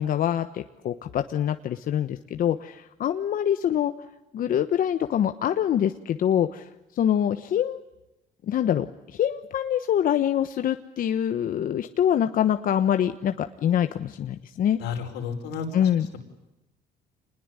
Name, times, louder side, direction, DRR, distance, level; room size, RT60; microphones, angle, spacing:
voice 1, 0.0-3.9 4.3-7.8 8.5-14.8 15.7-16.1, left 10 dB, 55° left, 9 dB, 1.2 m, -25 dB
voice 2, 14.8-16.2, left 6 dB, 90° left, 4 dB, 5.1 m, -33 dB
27.0 x 21.0 x 9.7 m, 0.98 s
cardioid pair, 110°, 17 cm